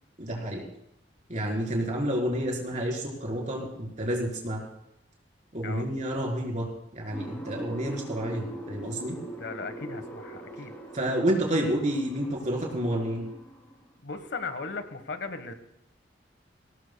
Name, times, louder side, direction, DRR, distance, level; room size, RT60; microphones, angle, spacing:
voice 1, 0.2-0.6 1.3-4.6 5.5-9.2 10.9-13.3, right 1 dB, 40° right, -1 dB, 4.3 m, -29 dB
sound 1, 7.1-13.9, right 1 dB, 10° left, 2.8 m, -42 dB
voice 2, 9.3-10.7 14.0-15.5, left 4 dB, 75° left, 9 dB, 1.5 m, -37 dB
22.0 x 18.0 x 2.3 m, 0.82 s
head